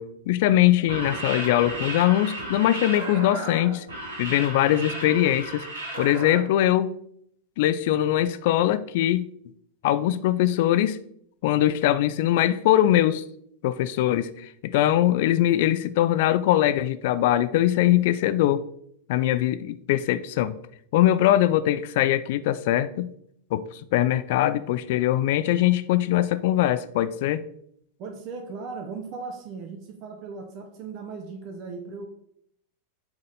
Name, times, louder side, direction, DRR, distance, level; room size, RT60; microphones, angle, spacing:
voice 1, 0.0-3.9 4.2-5.7 6.0-6.9 7.6-9.3 9.8-11.0 11.4-13.2 13.6-18.6 19.1-20.6 20.9-23.1 23.5-27.4, left 13 dB, 50° left, 14 dB, 0.3 m, -22 dB
sound 1, 0.8-6.4, right 2 dB, 65° right, 2.8 m, -34 dB
voice 2, 28.0-32.1, right 4 dB, 40° right, 5 dB, 0.9 m, -37 dB
8.4 x 3.9 x 4.0 m, 0.71 s
figure-of-eight pair, 90°, 0 cm